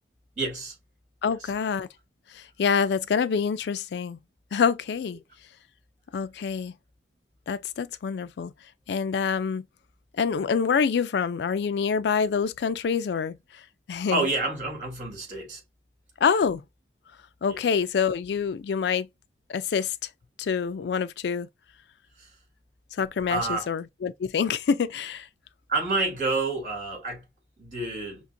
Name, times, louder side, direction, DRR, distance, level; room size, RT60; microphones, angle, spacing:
voice 1, 0.4-0.7 1.4-1.5 14.1-15.6 17.5-17.6 22.2-22.3 23.3-23.7 25.7-27.2 27.6-28.2, right 3 dB, 45° right, 2.6 m, -29 dB
voice 2, 1.2-1.9 2.3-4.2 4.5-5.2 6.1-6.8 7.5-8.5 8.9-9.7 10.2-13.6 13.9-14.3 16.2-16.7 17.4-19.1 19.5-20.0 20.4-21.5 22.9-25.3, left 6 dB, 70° left, 0.3 m, -26 dB
5.8 x 2.4 x 2.5 m
head